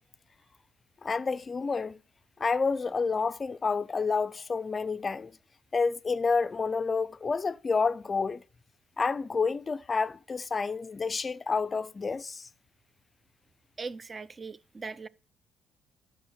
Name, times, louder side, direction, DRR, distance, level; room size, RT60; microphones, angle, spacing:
voice 1, 1.0-2.0 2.4-5.3 5.7-8.4 9.0-12.4, left 4 dB, 35° left, 0.4 m, -29 dB
voice 2, 13.8-15.1, right 4 dB, 35° right, 0.5 m, -39 dB
11.0 x 5.7 x 6.4 m
supercardioid pair, 60°, 0 cm